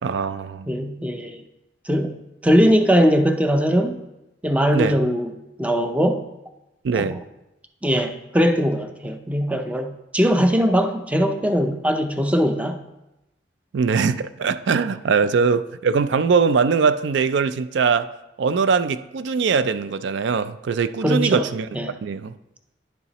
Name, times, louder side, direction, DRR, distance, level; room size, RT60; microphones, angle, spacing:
voice 1, 0.0-0.7 4.7-5.0 6.8-7.2 13.7-18.1 18.4-21.7 22.0-22.3, right 5 dB, 65° right, 14 dB, 0.4 m, -21 dB
voice 2, 0.7-1.4 1.9-2.1 2.4-4.0 4.4-5.3 5.6-6.2 6.9-7.1 7.8-12.8 21.0-21.5 21.7-22.0, equal, 5° right, 7 dB, 0.5 m, -20 dB
10.5 x 6.8 x 3.0 m, 0.93 s
head